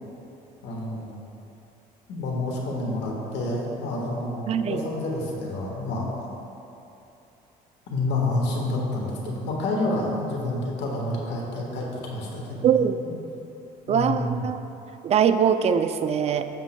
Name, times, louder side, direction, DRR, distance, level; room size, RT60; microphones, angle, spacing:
voice 1, 0.6-1.2 2.1-6.1 7.9-13.2 13.9-14.5, left 2 dB, 85° left, -2 dB, 1.5 m, -29 dB
voice 2, 4.5-4.8 12.6-13.0 13.9-14.6 15.0-16.5, right 8 dB, 40° right, 9 dB, 0.4 m, -22 dB
12.5 x 7.2 x 2.2 m, 2.9 s
cardioid pair, 110°, 17 cm